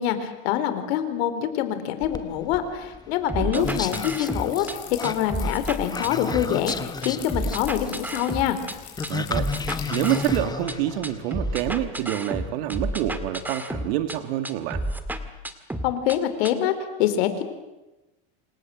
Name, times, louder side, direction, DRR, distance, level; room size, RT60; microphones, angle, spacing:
voice 1, 0.0-4.7 5.0-8.6 15.8-16.7 17.0-17.4, left 10 dB, 75° left, 10 dB, 4.3 m, -25 dB
sound 1, 2.0-11.6, left 5 dB, 10° left, 1.3 m, -34 dB
sound 2, 3.3-4.7 5.0-6.7 7.0-8.7 9.0-10.7 11.0-14.2 14.4-16.2 16.4-16.5, right 1 dB, 5° right, 1.9 m, -31 dB
voice 2, 3.3-3.7 9.1-9.5 9.9-14.8, right 12 dB, 75° right, 9 dB, 2.5 m, -27 dB
sound 3, 3.5-10.4, left 11 dB, 50° left, 7.9 m, -43 dB
27.5 x 26.5 x 7.8 m, 1.0 s
supercardioid pair, 145°, 31 cm